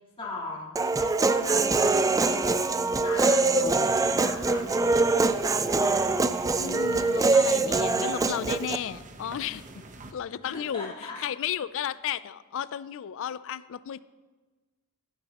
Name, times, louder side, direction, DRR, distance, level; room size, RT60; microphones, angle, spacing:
voice 1, 0.2-2.5 3.0-4.7 10.4-11.1, left 2 dB, 25° left, -6 dB, 3.4 m, -39 dB
Human voice, 0.8-8.8, right 3 dB, 15° right, 0.4 m, -24 dB
sound 1, 3.7-10.1, right 2 dB, 35° right, 0.9 m, -46 dB
voice 2, 6.6-9.9 10.1-14.0, left 9 dB, 65° left, 17 dB, 0.4 m, -34 dB
16.0 x 12.0 x 3.0 m, 1.3 s
head